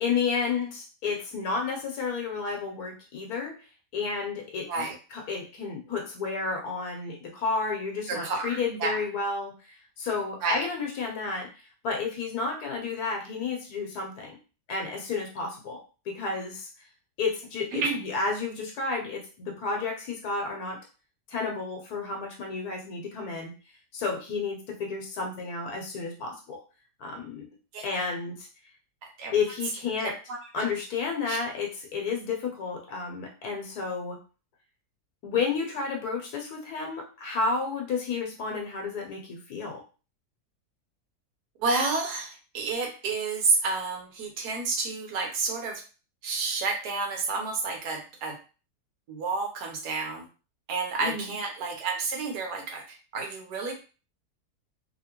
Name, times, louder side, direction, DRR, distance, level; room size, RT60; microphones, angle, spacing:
voice 1, 0.0-3.5 3.9-4.9 5.1-14.4 14.7-16.7 17.2-20.8 21.3-23.5 23.9-26.6 27.0-27.5 27.8-28.5 29.3-30.2 30.5-34.2 35.2-39.8 51.0-51.4, left 4 dB, 75° left, 1 dB, 1.2 m, -31 dB
voice 2, 8.1-9.0 10.4-10.7 17.7-18.1 27.7-27.9 29.0-29.3 30.0-30.7 31.2-31.4 41.6-45.8 46.2-48.4 49.1-50.3 50.7-53.7, right 4 dB, 80° right, 3 dB, 1.4 m, -30 dB
2.8 x 2.8 x 2.8 m, 0.34 s
omnidirectional pair, 1.7 m